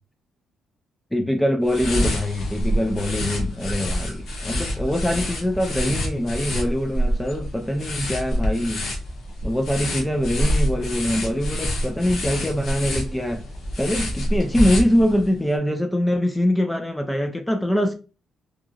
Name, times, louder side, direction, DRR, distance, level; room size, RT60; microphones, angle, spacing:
voice 1, 1.1-8.8 9.4-13.5 13.8-17.9, equal, 10° left, 0.4 m, -23 dB
sound 1, 1.6-15.3, equal, 65° left, 0.9 m, -27 dB
2.9 x 2.4 x 2.4 m
cardioid pair, 90°, 0 cm